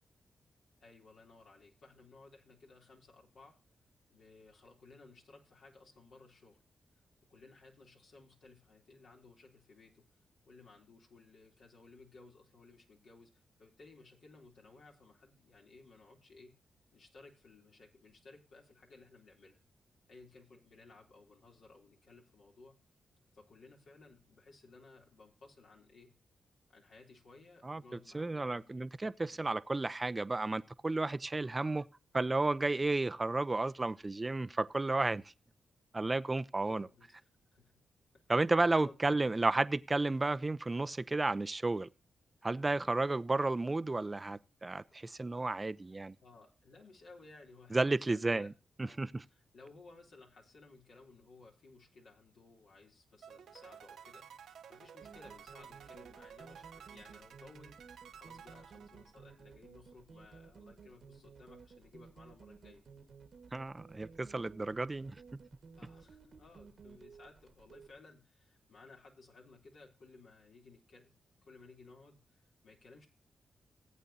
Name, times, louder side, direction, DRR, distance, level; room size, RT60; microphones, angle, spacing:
voice 1, 0.8-3.6 4.1-6.6 6.9-7.0 7.3-10.1 10.5-16.6 16.9-19.6 20.1-22.8 23.3-26.1 26.7-28.7 29.2-29.4 36.6-37.7 38.6-39.3 46.2-48.5 48.8-49.0 49.3-62.8 65.8-71.1 71.4-73.1, left 3 dB, 75° left, 3.4 m, -58 dB
voice 2, 27.6-31.9 32.1-35.2 35.9-36.9 38.3-41.9 42.4-46.2 47.7-48.5 48.8-49.2 63.5-65.4, right 2 dB, 30° right, 0.7 m, -32 dB
sound 1, 53.2-59.5, right 8 dB, 80° right, 0.9 m, -54 dB
sound 2, 55.0-67.9, right 5 dB, 65° right, 1.6 m, -56 dB
18.0 x 8.3 x 2.8 m
supercardioid pair, 45°, 0 cm